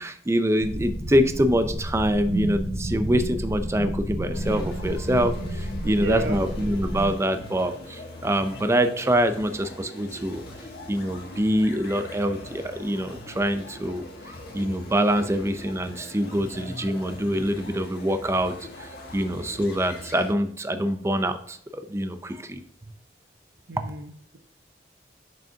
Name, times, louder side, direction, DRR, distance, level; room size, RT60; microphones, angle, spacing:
voice 1, 0.0-10.4 10.9-14.0 14.5-18.5 18.8-22.6 23.8-23.9, equal, 15° right, 8 dB, 0.5 m, -25 dB
sound 1, 0.6-7.1, equal, 50° right, 1.7 m, -30 dB
sound 2, 4.3-20.3, left 1 dB, 55° left, 1.5 m, -42 dB
voice 2, 6.0-6.4 23.7-24.4, right 1 dB, 70° right, 9 dB, 0.7 m, -32 dB
6.7 x 6.3 x 2.8 m, 0.65 s
head